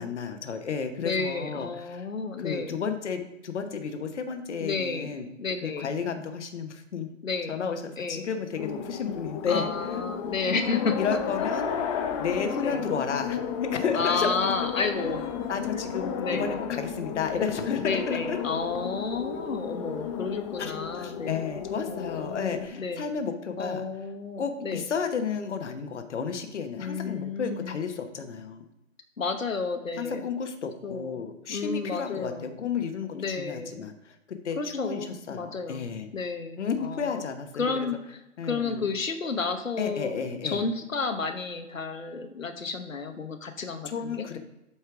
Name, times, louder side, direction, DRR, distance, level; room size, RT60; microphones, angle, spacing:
voice 1, 0.0-2.1 2.4-5.3 5.6-7.1 7.5-9.7 11.0-11.7 12.2-14.3 15.5-18.4 20.6-23.8 24.4-28.6 30.0-34.2 34.4-36.1 36.6-37.9 38.4-38.9 39.8-40.6 43.8-44.4, left 6 dB, 65° left, 7 dB, 1.1 m, -32 dB
voice 2, 1.0-2.8 4.6-5.1 5.4-5.9 7.2-7.6 8.0-8.3 9.5-11.2 12.6-12.8 13.9-15.2 16.2-16.5 17.8-21.4 21.9-23.0 23.6-24.8 26.8-27.9 29.2-30.3 30.8-31.2 31.5-32.6 33.1-33.8 34.6-37.2 37.6-38.2 38.4-40.1 40.4-44.3, left 4 dB, 85° left, 6 dB, 1.0 m, -31 dB
sound 1, 8.6-22.7, left 7 dB, 25° left, 0.7 m, -33 dB
8.3 x 4.4 x 4.8 m, 0.90 s
figure-of-eight pair, 130°, 38 cm